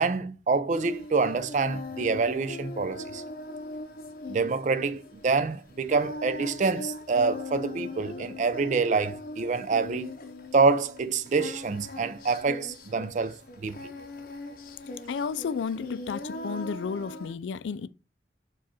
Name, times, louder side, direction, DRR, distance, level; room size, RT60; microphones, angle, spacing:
voice 1, 0.0-3.2 4.3-10.1 10.5-13.9, right 4 dB, 40° right, 0.3 m, -26 dB
Singing, 0.7-17.3, left 2 dB, 50° left, 0.7 m, -40 dB
voice 2, 15.1-17.9, left 6 dB, 85° left, 0.4 m, -32 dB
4.8 x 2.4 x 4.2 m
head